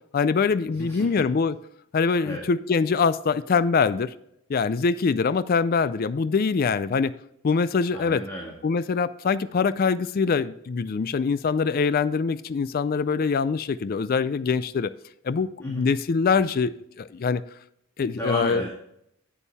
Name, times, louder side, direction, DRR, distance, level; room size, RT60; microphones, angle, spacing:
voice 1, 0.1-1.6 1.9-4.1 4.5-7.1 7.4-8.2 8.6-14.9 15.2-17.4 18.0-18.6, left 5 dB, 45° left, 15 dB, 0.4 m, -24 dB
voice 2, 0.7-1.3 2.2-2.4 7.9-8.5 15.6-15.8 18.1-18.7, equal, 15° left, -3 dB, 1.7 m, -34 dB
9.0 x 8.4 x 3.4 m, 0.75 s
head